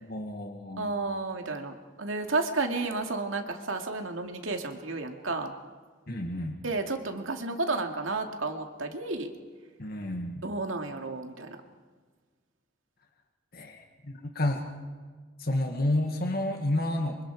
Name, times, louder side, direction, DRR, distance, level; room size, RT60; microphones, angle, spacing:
voice 1, 0.0-0.9 6.1-6.6 9.8-10.4 13.5-14.6 15.4-17.2, left 1 dB, 45° left, 2 dB, 1.9 m, -30 dB
voice 2, 0.8-5.5 6.6-9.3 10.4-11.6, right 3 dB, 75° right, 4 dB, 2.4 m, -32 dB
25.5 x 24.5 x 4.8 m, 1.5 s
head